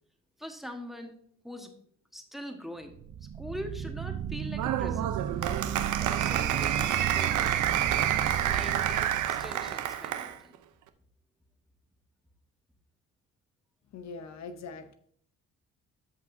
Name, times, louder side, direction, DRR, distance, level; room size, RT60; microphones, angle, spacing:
voice 1, 0.4-1.2 1.4-1.7 2.1-3.0 3.4-5.2 6.0-7.4 8.4-10.5, equal, ahead, 4 dB, 1.3 m, -42 dB
sound 1, 2.9-10.0, right 9 dB, 40° right, 0.5 m, -34 dB
Applause, 4.6-10.4, right 11 dB, 75° right, 0.7 m, -29 dB
voice 2, 13.9-14.9, left 4 dB, 60° left, 8 dB, 0.8 m, -42 dB
13.5 x 5.4 x 2.7 m, 0.63 s
cardioid pair, 90°, 30 cm